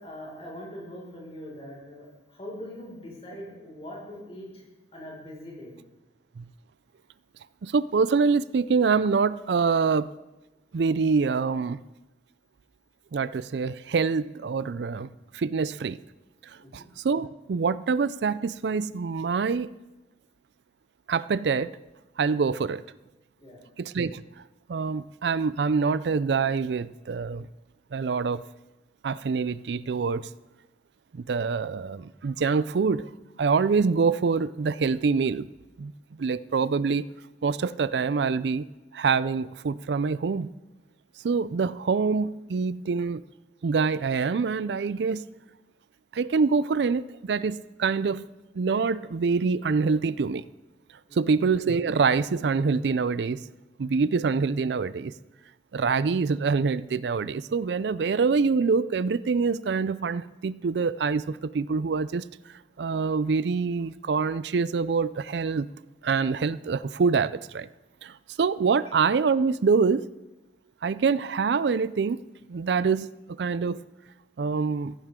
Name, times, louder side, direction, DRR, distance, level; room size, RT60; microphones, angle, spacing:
voice 1, 0.0-4.6 4.9-5.7 16.6-16.9 22.4-22.5 23.4-23.6 51.0-51.4, left 1 dB, 35° left, -3 dB, 5.3 m, -42 dB
voice 2, 7.6-10.1 10.7-11.8 13.1-16.0 16.4-19.7 21.1-21.7 22.2-22.8 23.8-24.2 24.7-27.5 27.9-28.4 29.0-30.3 31.1-33.1 33.4-35.5 35.8-35.9 36.2-37.0 37.4-38.7 38.9-40.5 41.2-43.2 43.6-45.2 46.1-48.3 48.5-50.4 51.1-53.4 53.8-55.1 55.7-62.3 62.8-65.7 66.0-67.7 68.0-70.1 70.8-72.2 72.5-73.1 73.4-73.8 74.4-74.9, right 5 dB, 80° right, 17 dB, 0.4 m, -25 dB
15.5 x 14.5 x 3.7 m, 1.0 s
head